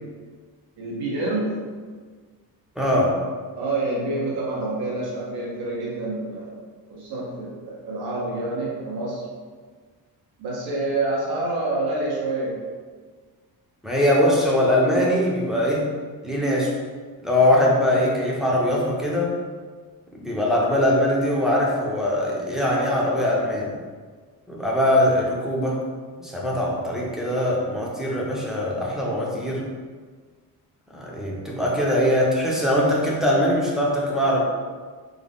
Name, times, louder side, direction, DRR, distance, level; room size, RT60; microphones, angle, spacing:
voice 1, 0.8-1.7 3.6-6.6 6.9-9.3 10.4-12.7, right 2 dB, 85° right, -4 dB, 0.8 m, -27 dB
voice 2, 2.8-3.2 13.8-15.9 16.2-16.7 17.2-19.4 20.1-23.7 24.5-25.8 26.2-29.7 30.9-34.4, left 1 dB, ahead, -4 dB, 0.4 m, -22 dB
3.7 x 2.2 x 3.4 m, 1.5 s
cardioid pair, 160°, 37 cm